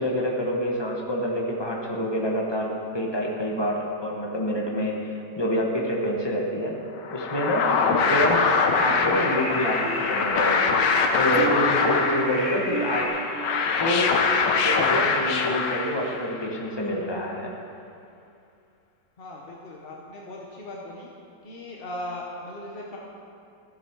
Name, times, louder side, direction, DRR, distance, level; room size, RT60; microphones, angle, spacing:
voice 1, 0.0-6.8 7.1-7.7 8.1-10.7 11.2-13.1 13.8-14.2 14.6-17.5, equal, 15° left, -2 dB, 1.0 m, -27 dB
sound 1, 7.0-16.4, left 5 dB, 75° left, 1.4 m, -23 dB
sound 2, 8.2-13.1, equal, 20° right, 1.5 m, -34 dB
sound 3, 9.8-15.4 15.9-16.2 16.7-16.9, right 6 dB, 60° right, 1.1 m, -37 dB
voice 2, 19.2-21.1 21.4-23.0, left 1 dB, 45° left, -2 dB, 0.8 m, -38 dB
13.0 x 7.9 x 4.5 m, 2.5 s
omnidirectional pair, 2.0 m